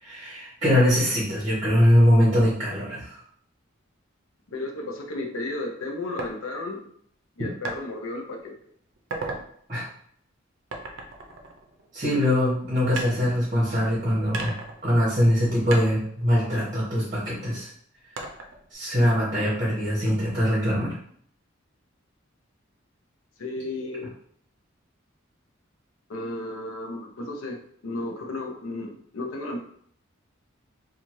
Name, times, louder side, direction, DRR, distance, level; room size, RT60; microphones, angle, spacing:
voice 1, 0.0-3.2 9.7-9.8 11.9-14.5 14.8-17.7 18.7-21.0, equal, 30° right, -9 dB, 1.1 m, -22 dB
voice 2, 4.5-6.9 7.4-8.5 23.4-24.1 26.1-29.6, left 2 dB, 85° left, 2 dB, 0.5 m, -33 dB
sound 1, 6.2-6.3 7.6-7.8 8.3-8.6 9.0-9.5 10.7-12.2 13.0-13.8 14.3-15.4 15.7-17.3 18.2-18.7, right 2 dB, 70° right, 0.5 m, -36 dB
2.6 x 2.4 x 3.0 m, 0.62 s
head